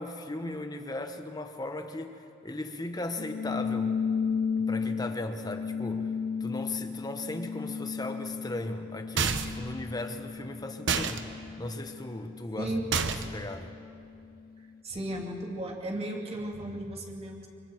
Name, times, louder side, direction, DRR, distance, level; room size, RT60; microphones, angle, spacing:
voice 1, 0.0-3.9 4.7-6.1 6.4-11.3 11.6-13.7, left 2 dB, 20° left, 6 dB, 1.2 m, -37 dB
sound 1, 3.2-14.1, left 6 dB, 50° left, 0.5 m, -34 dB
sound 2, 9.2-9.7 10.9-11.2 12.9-13.4, right 5 dB, 65° right, 1.0 m, -28 dB
voice 2, 12.6-12.9 14.6-17.5, right 1 dB, 30° right, -1 dB, 2.6 m, -35 dB
25.0 x 24.5 x 4.7 m, 2.5 s
head